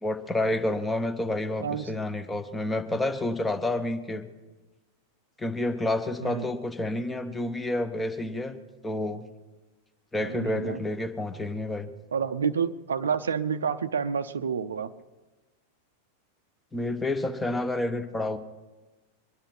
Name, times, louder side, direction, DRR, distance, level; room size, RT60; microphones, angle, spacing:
voice 1, 0.0-4.3 5.4-8.6 8.8-9.2 10.1-11.9 16.7-18.4, left 1 dB, 10° left, 8 dB, 1.0 m, -29 dB
voice 2, 1.6-1.9 6.2-6.4 10.2-10.8 12.1-14.9, right 6 dB, 70° right, 13 dB, 0.6 m, -29 dB
23.0 x 10.5 x 5.9 m, 1.2 s
figure-of-eight pair, 90°, 0 cm